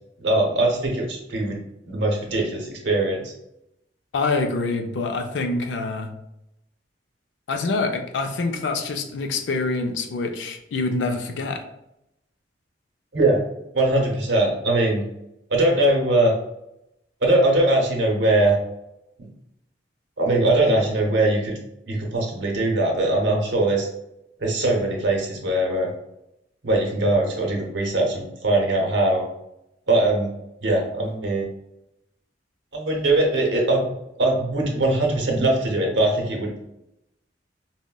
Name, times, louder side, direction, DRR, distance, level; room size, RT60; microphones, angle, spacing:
voice 1, 0.2-1.6 1.9-3.3 13.1-13.4 13.7-15.0 15.5-16.3 17.2-18.5 19.2-19.3 20.2-21.5 21.9-23.9 24.4-25.9 26.6-29.2 29.9-30.3 30.6-31.4 32.7-33.8 34.2-36.6, right 2 dB, 75° right, 0 dB, 0.8 m, -21 dB
voice 2, 4.1-6.1 7.5-11.6, left 3 dB, 75° left, 5 dB, 0.4 m, -26 dB
3.7 x 2.1 x 2.2 m, 0.84 s
head